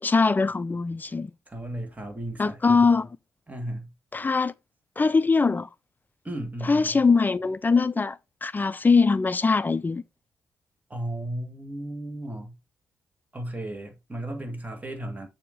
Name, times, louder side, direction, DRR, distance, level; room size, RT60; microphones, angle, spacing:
voice 1, 0.0-1.3 2.4-3.1 4.1-4.5 5.0-5.7 6.6-10.0, left 4 dB, 25° left, 0.5 m, -22 dB
voice 2, 1.5-2.6 3.5-3.9 6.2-7.0 10.9-12.5 13.3-15.3, right 1 dB, 20° right, 1.9 m, -35 dB
6.8 x 2.9 x 4.9 m
hypercardioid pair, 40°, 8 cm